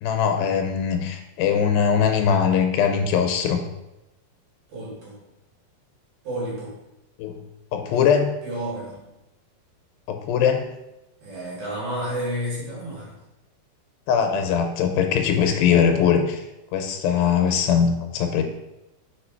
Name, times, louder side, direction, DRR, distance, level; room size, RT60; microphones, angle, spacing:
voice 1, 0.0-3.6 7.2-7.4 7.7-8.3 10.1-10.7 14.1-16.4 16.7-18.4, left 7 dB, 85° left, 5 dB, 2.5 m, -21 dB
voice 2, 4.7-5.2 6.2-6.8 7.9-8.1 8.4-9.0 11.2-13.2, right 1 dB, 60° right, -6 dB, 2.9 m, -31 dB
4.8 x 4.7 x 4.4 m, 0.94 s
omnidirectional pair, 4.1 m